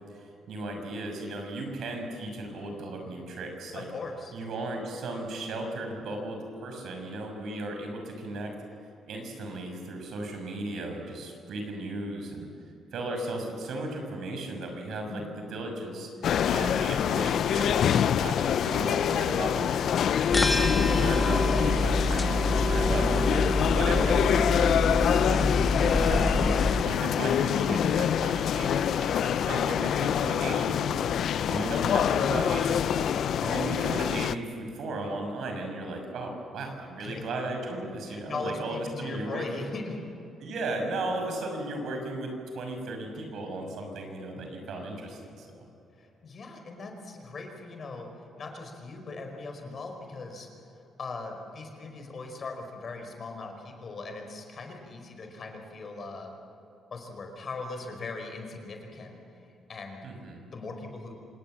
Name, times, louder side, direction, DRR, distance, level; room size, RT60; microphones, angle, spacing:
voice 1, 0.5-3.9 4.3-8.5 9.1-12.5 12.9-16.1 16.5-20.3 20.7-25.5 26.0-31.1 31.5-33.1 33.4-39.6 40.4-42.3 42.5-45.5 60.0-60.5, right 2 dB, 70° right, 3 dB, 6.1 m, -35 dB
voice 2, 3.7-4.3 15.1-15.4 25.7-26.0 37.0-37.3 38.1-40.0 46.0-48.1 48.4-50.5 51.0-56.3 56.9-59.2 59.7-60.0 60.5-61.1, left 3 dB, 45° left, 4 dB, 4.8 m, -39 dB
sound 1, 16.2-34.4, left 9 dB, 65° left, 0.6 m, -26 dB
sound 2, 20.3-26.8, left 2 dB, 20° left, 1.6 m, -26 dB
27.0 x 19.0 x 7.6 m, 2.8 s
cardioid pair, 90°, 0 cm